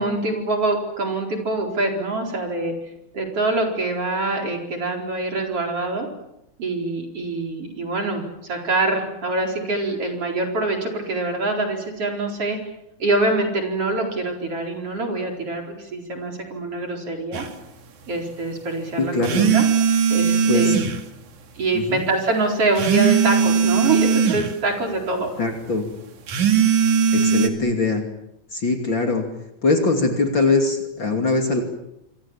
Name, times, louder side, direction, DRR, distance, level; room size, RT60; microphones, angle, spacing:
voice 1, 0.0-2.7 3.1-6.1 6.6-12.6 13.0-17.5 18.1-19.6 20.1-20.8 21.5-25.3, right 2 dB, 50° right, 2 dB, 5.3 m, -24 dB
sound 1, 17.3-17.5 19.2-21.0 22.8-24.5 26.3-27.5, right 7 dB, 75° right, 3.6 m, -19 dB
voice 2, 19.0-19.5 20.5-20.7 21.7-22.0 25.4-25.9 27.1-28.0 28.5-29.3 29.6-31.6, left 3 dB, 40° left, 4 dB, 3.4 m, -22 dB
27.0 x 25.5 x 7.4 m, 0.82 s
omnidirectional pair, 3.5 m